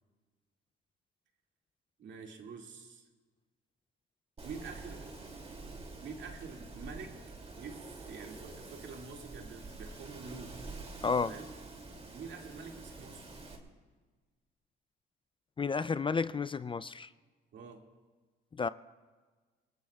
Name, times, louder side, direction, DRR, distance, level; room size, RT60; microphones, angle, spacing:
voice 1, 2.0-3.1 4.4-5.1 6.0-7.2 7.5-10.6 11.2-11.5 12.1-13.3 17.5-17.9, right 5 dB, 65° right, 2 dB, 2.1 m, -47 dB
Wind, 4.4-13.6, right 3 dB, 30° right, 2.6 m, -47 dB
voice 2, 15.6-17.1 18.6-18.7, left 5 dB, 25° left, 15 dB, 0.4 m, -31 dB
27.5 x 18.0 x 2.3 m, 1.4 s
cardioid pair, 90°, 20 cm